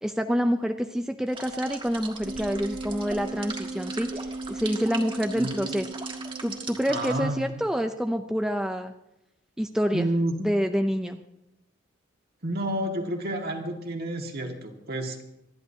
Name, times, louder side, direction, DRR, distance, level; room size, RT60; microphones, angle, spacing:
voice 1, 0.0-5.9 6.4-8.9 9.6-10.1 10.4-11.2, equal, 5° right, 5 dB, 0.5 m, -27 dB
sound 1, 1.3-7.2, right 4 dB, 25° right, 1.7 m, -40 dB
Wind instrument woodwind instrument, 2.2-7.7, right 2 dB, 75° right, 1.9 m, -37 dB
voice 2, 5.3-5.8 6.9-7.5 9.9-10.4 12.4-15.2, right 1 dB, 50° right, 2 dB, 1.9 m, -30 dB
27.0 x 10.5 x 2.8 m, 0.87 s
head